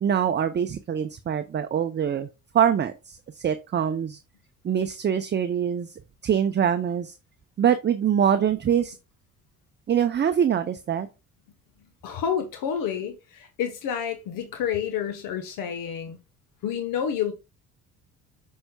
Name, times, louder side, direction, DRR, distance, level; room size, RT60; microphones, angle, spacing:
voice 1, 0.0-2.3 2.5-4.2 4.6-5.9 6.2-7.1 7.6-8.9 9.9-11.1, right 8 dB, 30° right, 0.6 m, -24 dB
voice 2, 12.0-16.2 16.6-17.3, left 8 dB, 70° left, 1.1 m, -29 dB
7.8 x 5.5 x 2.3 m
supercardioid pair, 70°, 34 cm